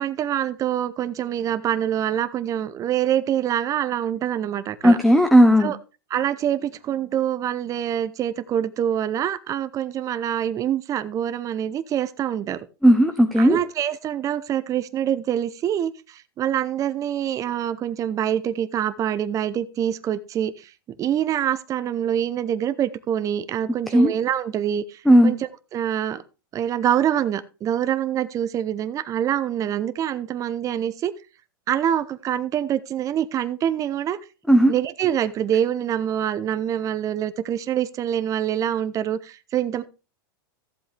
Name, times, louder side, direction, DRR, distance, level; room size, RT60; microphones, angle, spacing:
voice 1, 0.0-5.0 5.6-5.8 6.1-12.7 13.4-20.7 21.0-26.2 26.5-31.1 31.7-34.2 34.7-39.8, right 10 dB, 30° right, 0.7 m, -25 dB
voice 2, 4.8-5.7 12.8-13.6 23.9-24.1 25.1-25.3 34.5-34.7, equal, ahead, 0.8 m, -14 dB
14.5 x 7.7 x 3.4 m
hypercardioid pair, 120°, 12 cm